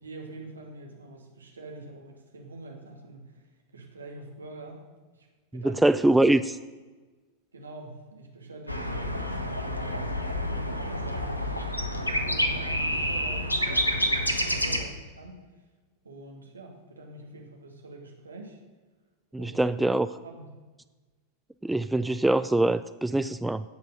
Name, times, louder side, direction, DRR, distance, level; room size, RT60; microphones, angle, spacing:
voice 1, 0.0-3.5 3.7-4.8 5.1-5.3 5.5-5.8 7.5-11.6 12.1-15.4 16.0-18.6 19.4-19.6 20.1-20.5, right 2 dB, 75° right, 1 dB, 2.3 m, -45 dB
voice 2, 5.5-6.6 19.3-20.1 21.6-23.6, right 1 dB, 5° right, 12 dB, 0.3 m, -23 dB
sound 1, 8.7-14.8, left 1 dB, 85° left, 1.1 m, -28 dB
16.5 x 5.6 x 6.5 m, 1.3 s
figure-of-eight pair, 90°, 0 cm